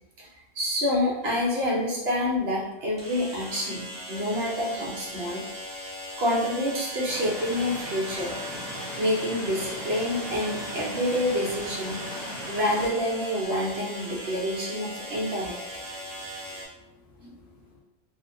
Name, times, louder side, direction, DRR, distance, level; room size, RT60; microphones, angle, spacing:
voice 1, 0.5-5.4 6.2-8.3 9.0-12.0 12.5-15.6, left 1 dB, 60° right, -4 dB, 0.8 m, -27 dB
sound 1, 0.9-1.0 3.0-16.7, equal, 5° right, 0.6 m, -38 dB
sound 2, 7.1-12.9, left 1 dB, 55° left, 0.8 m, -38 dB
voice 2, 15.9-17.8, left 2 dB, 80° left, -2 dB, 1.0 m, -55 dB
2.8 x 2.1 x 2.5 m, 0.88 s
omnidirectional pair, 1.4 m